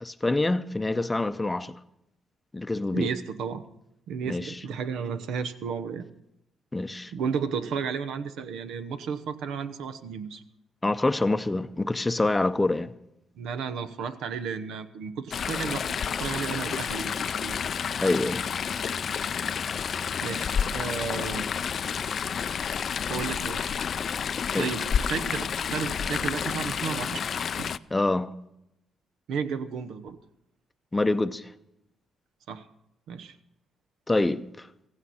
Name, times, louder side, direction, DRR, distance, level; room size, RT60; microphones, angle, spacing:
voice 1, 0.0-1.7 2.5-3.1 4.3-4.5 6.7-7.1 10.8-12.9 18.0-18.4 24.5-24.7 27.9-28.3 30.9-31.5 34.1-34.7, left 2 dB, 15° left, 0.7 m, -26 dB
voice 2, 2.9-3.6 4.1-6.0 7.1-10.4 13.3-15.8 16.2-17.5 20.2-21.5 23.1-23.7 24.5-27.3 27.6-27.7 29.3-30.2 32.5-32.7 33.1-33.4, right 6 dB, 80° right, 0.9 m, -33 dB
Chatter / Stream, 15.3-27.8, left 7 dB, 55° left, 0.4 m, -30 dB
16.0 x 15.5 x 4.2 m
cardioid pair, 90°, 0 cm